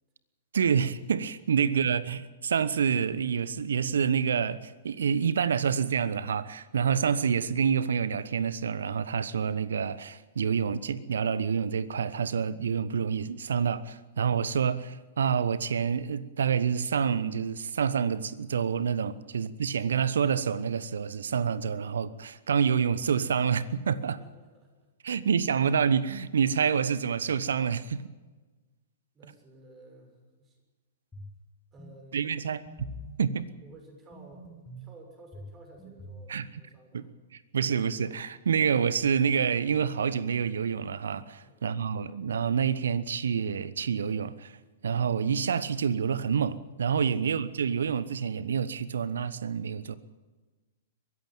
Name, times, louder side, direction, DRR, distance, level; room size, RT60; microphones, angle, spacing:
voice 1, 0.5-24.2 25.0-28.0 32.1-32.9 33.2-33.5 36.3-36.5 36.9-37.0 37.3-44.6 44.8-50.0, right 7 dB, 70° right, 1.1 m, -27 dB
voice 2, 24.1-24.9 29.1-30.6 31.7-32.3 33.6-34.5 34.8-37.1 41.4-41.7, right 1 dB, 25° right, 6.8 m, -53 dB
sound 1, 31.1-31.4 31.8-31.9 32.4-33.2 34.1-34.9 35.3-36.3, equal, 10° left, 6.9 m, -44 dB
23.0 x 14.5 x 9.1 m
figure-of-eight pair, 105°, 0 cm